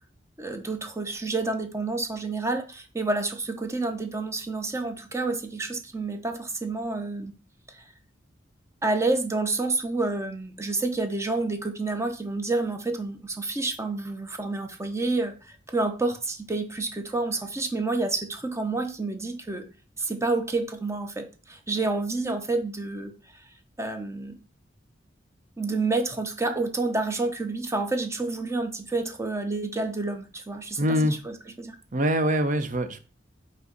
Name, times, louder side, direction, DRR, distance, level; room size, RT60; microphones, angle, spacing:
voice 1, 0.4-7.3 7.7-7.8 8.8-19.7 20.0-23.4 23.8-24.3 25.6-31.8, right 3 dB, 15° right, 5 dB, 0.8 m, -29 dB
voice 2, 30.8-31.1 31.9-33.0, equal, 45° right, 9 dB, 0.8 m, -24 dB
5.6 x 4.6 x 4.0 m, 0.35 s
head